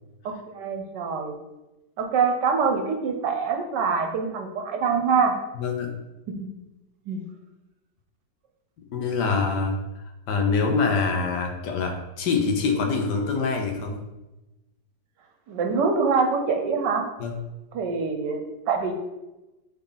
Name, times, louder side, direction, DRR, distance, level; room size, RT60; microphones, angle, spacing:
voice 1, 0.2-1.3 2.0-5.3 7.1-7.2 15.5-17.0 17.7-18.9, right 5 dB, 70° right, 4 dB, 1.4 m, -24 dB
voice 2, 5.5-6.0 8.9-14.0 17.2-17.4, left 4 dB, 65° left, 3 dB, 1.4 m, -25 dB
7.7 x 4.0 x 3.9 m, 1.0 s
omnidirectional pair, 2.0 m